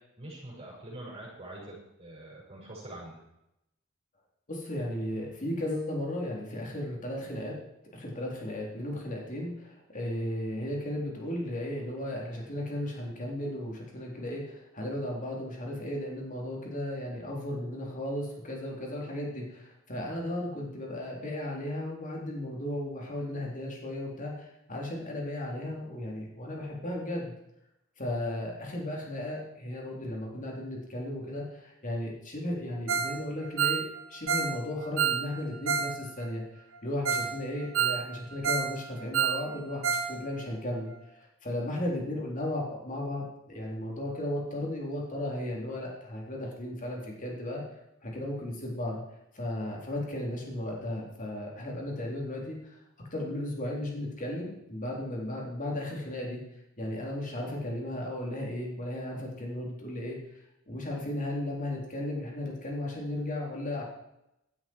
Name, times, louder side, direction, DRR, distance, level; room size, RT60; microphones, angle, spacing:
voice 1, 0.2-3.2, right 1 dB, 30° right, -5 dB, 6.3 m, -44 dB
voice 2, 4.5-7.6 7.9-27.3 28.0-40.9 41.2-47.6 48.0-49.0 49.3-52.8 53.1-56.4 56.8-60.2 60.7-63.8, left 1 dB, 40° left, -1 dB, 4.0 m, -35 dB
Ringtone, 32.9-33.2 33.4-35.9 36.2-36.3 36.8-36.9 37.1-37.3 37.6-38.7 39.0-40.1 40.4-40.5 40.9-41.0, right 7 dB, 65° right, 1.3 m, -29 dB
15.5 x 12.5 x 4.8 m, 0.86 s
head